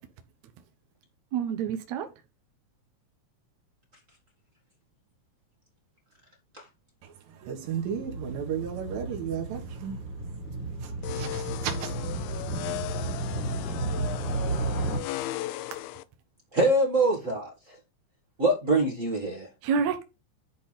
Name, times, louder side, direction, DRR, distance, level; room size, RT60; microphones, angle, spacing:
voice 1, 1.3-2.1 12.6-12.8 19.6-20.0, right 6 dB, 70° right, 1.9 m, -28 dB
voice 2, 7.0-10.1 10.7-13.2 13.7-13.8, right 8 dB, 90° right, 3.2 m, -36 dB
Motorcycle, 7.6-15.0, right 2 dB, 60° left, 3.5 m, -33 dB
sound 1, 11.0-16.0, left 15 dB, 85° left, 1.7 m, -36 dB
voice 3, 16.5-17.8 18.4-19.5, right 2 dB, 40° right, 1.1 m, -24 dB
10.5 x 3.4 x 5.7 m
omnidirectional pair, 3.9 m